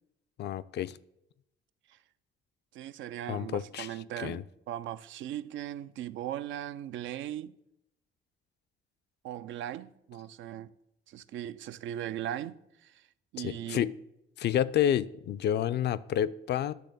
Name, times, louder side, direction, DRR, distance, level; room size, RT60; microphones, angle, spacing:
voice 1, 0.4-1.0 3.3-3.9 4.2-4.4 13.4-14.0 14.4-16.7, left 10 dB, 60° left, 0.4 m, -29 dB
voice 2, 2.7-7.6 9.2-10.7 11.1-13.1 13.3-13.9, right 11 dB, 75° right, 0.4 m, -39 dB
10.0 x 3.4 x 6.6 m
cardioid pair, 90°, 20 cm